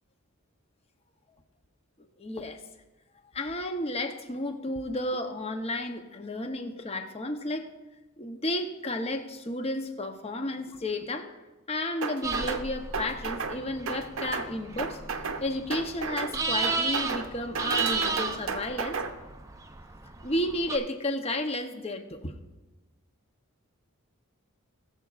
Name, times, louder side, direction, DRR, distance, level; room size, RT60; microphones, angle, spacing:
voice 1, 2.2-2.6 3.3-7.7 8.2-11.4 11.7-15.0 15.4-19.0 20.2-22.3, left 1 dB, 25° left, 6 dB, 0.7 m, -32 dB
sound 1, 12.0-12.6 12.9-13.6 13.9-14.5 14.8-15.4 15.7-16.3 16.6-17.3 17.5-19.1, right 4 dB, 65° right, 0.7 m, -33 dB
sound 2, 12.2-20.8, right 4 dB, 15° right, 0.4 m, -34 dB
20.0 x 7.1 x 2.4 m, 1.1 s
head